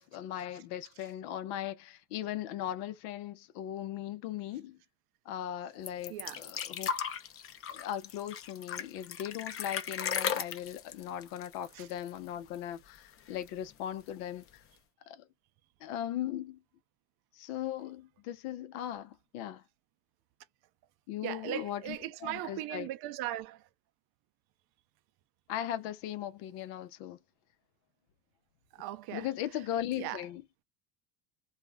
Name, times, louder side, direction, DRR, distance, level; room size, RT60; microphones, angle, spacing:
voice 1, 0.0-4.8 5.3-6.9 7.7-14.4 15.1-15.2 15.8-16.6 17.3-19.6 21.1-22.9 25.5-27.2 29.1-30.4, left 11 dB, 75° left, 0.7 m, -38 dB
sound 1, 5.9-12.3 12.5-12.6 13.0-13.7 14.5-14.6, left 8 dB, 30° left, 0.6 m, -36 dB
voice 2, 21.2-23.6 28.7-29.3 30.0-30.2, right 14 dB, 60° right, 0.5 m, -38 dB
2.4 x 2.0 x 3.4 m
supercardioid pair, 90°, 44 cm